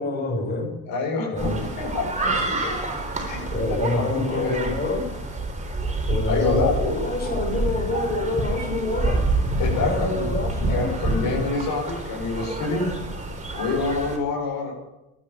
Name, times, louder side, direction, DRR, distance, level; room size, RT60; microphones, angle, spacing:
voice 1, 0.0-0.7 1.3-1.6 2.2-2.7 3.5-5.0 6.1-9.2 9.8-11.3, left 2 dB, 25° left, -1 dB, 7.4 m, -27 dB
voice 2, 0.9-2.1 3.3-3.4 3.7-4.1 4.3-4.6 6.3-6.7 9.6-10.1 10.7-12.9 13.5-14.7, left 4 dB, 65° left, -1 dB, 7.5 m, -26 dB
sound 1, 1.4-14.2, right 2 dB, 20° right, 4.1 m, -27 dB
12.5 x 12.0 x 8.9 m, 0.94 s
supercardioid pair, 100°, 37 cm